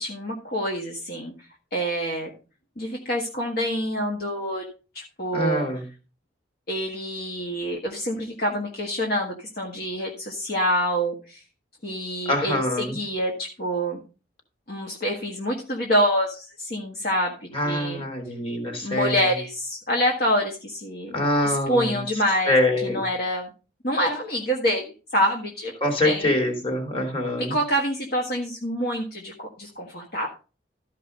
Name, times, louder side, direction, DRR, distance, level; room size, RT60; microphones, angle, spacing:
voice 1, 0.0-1.3 1.7-2.3 2.8-4.6 4.9-5.7 6.7-11.4 11.8-14.0 14.7-18.0 18.8-21.1 21.4-22.6 22.8-23.5 23.8-24.9 25.1-26.3 27.4-30.3, equal, 50° left, 0 dB, 1.6 m, -26 dB
voice 2, 5.3-5.8 12.2-13.0 17.5-19.2 21.1-22.0 22.5-23.0 25.8-27.5, left 1 dB, 30° left, 3 dB, 2.7 m, -24 dB
13.0 x 5.3 x 5.3 m, 0.34 s
head